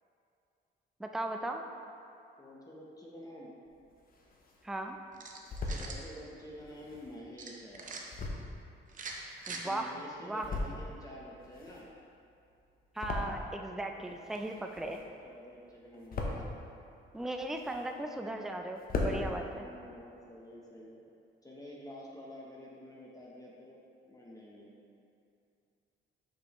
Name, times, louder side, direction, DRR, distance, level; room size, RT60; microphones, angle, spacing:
voice 1, 1.0-1.6 4.6-5.0 9.5-9.9 10.2-10.5 12.9-15.0 17.1-19.7, right 1 dB, ahead, 4 dB, 0.4 m, -37 dB
voice 2, 2.4-3.5 5.6-8.1 9.5-11.9 13.9-14.3 15.2-16.6 19.4-21.0 21.4-24.7, equal, 15° left, -4 dB, 0.9 m, -49 dB
sound 1, 3.7-4.7 5.1-5.9 6.6-9.8 10.2-11.0 11.3-13.7 14.0-15.3 15.6-16.6 17.1-18.2 18.5-18.6 18.8-19.2, left 2 dB, 45° left, 0.9 m, -39 dB
sound 2, 5.1-6.0 7.4-8.0 8.9-9.6, right 4 dB, 40° right, 0.7 m, -43 dB
6.1 x 5.4 x 3.0 m, 2.6 s
cardioid pair, 90°, 20 cm